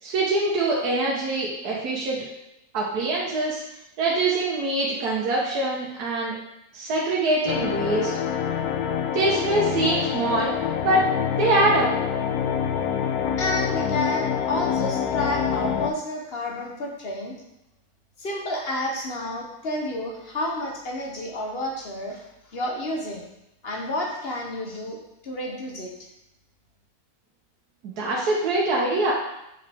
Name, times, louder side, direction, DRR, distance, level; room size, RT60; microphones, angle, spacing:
voice 1, 0.0-2.3 2.7-3.6 4.0-6.3 6.7-8.1 9.1-10.5 10.8-11.1 11.4-11.9 27.8-29.1, right 2 dB, 90° right, -4 dB, 1.5 m, -24 dB
sound 1, 7.5-15.9, left 8 dB, 75° left, 1.0 m, -26 dB
voice 2, 13.4-17.4 18.2-23.3 23.6-25.0 25.2-25.9, left 1 dB, 45° left, 0 dB, 1.0 m, -30 dB
6.2 x 4.8 x 3.4 m, 0.86 s
omnidirectional pair, 1.6 m